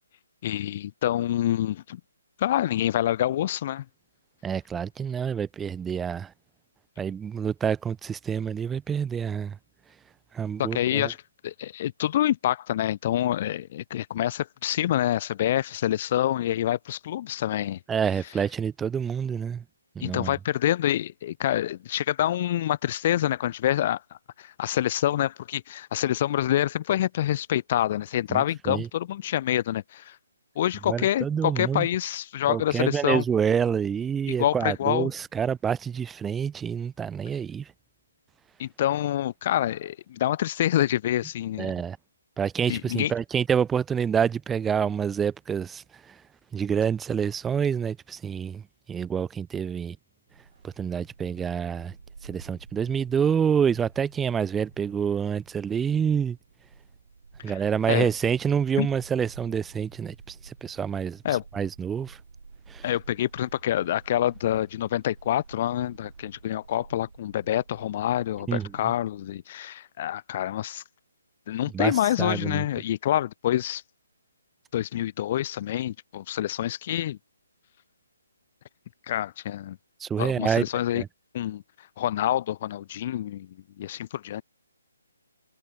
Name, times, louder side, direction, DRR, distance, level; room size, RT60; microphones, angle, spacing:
voice 1, 0.4-2.0 2.4-3.8 10.6-11.2 11.4-17.8 20.0-24.0 24.4-30.2 30.6-33.2 34.3-35.1 38.6-41.7 42.7-43.1 57.5-57.6 57.9-58.1 58.8-58.9 61.2-61.4 62.8-70.8 71.5-73.8 74.7-77.2 79.1-79.8 80.2-81.0 81.3-81.6 82.0-83.5 83.8-84.4, left 12 dB, 35° left, 0.5 m, -27 dB
voice 2, 4.4-6.3 7.0-9.6 10.3-11.1 17.9-19.6 20.0-20.3 28.3-28.9 30.9-31.9 32.5-37.7 41.6-42.0 42.4-46.2 46.5-48.6 48.9-50.0 50.6-51.9 52.2-56.4 57.4-62.2 62.7-62.8 68.5-68.7 71.7-71.9 72.2-72.7 80.0-80.7 80.9-81.1, right 7 dB, 10° right, 0.6 m, -27 dB
Bark, 50.3-69.4, right 4 dB, 75° right, 5.5 m, -50 dB
hypercardioid pair, 155°, 0 cm